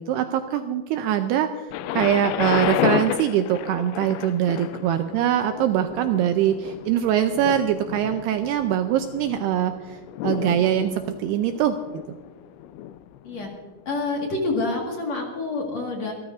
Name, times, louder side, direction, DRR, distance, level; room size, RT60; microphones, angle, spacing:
voice 1, 0.0-12.2, right 10 dB, 85° right, 7 dB, 2.4 m, -23 dB
Thunder, 1.7-13.6 14.3-14.4, left 12 dB, 85° left, 2.9 m, -31 dB
voice 2, 13.9-16.1, left 3 dB, 50° left, -1 dB, 2.4 m, -27 dB
26.5 x 13.5 x 2.6 m, 1.3 s
omnidirectional pair, 5.3 m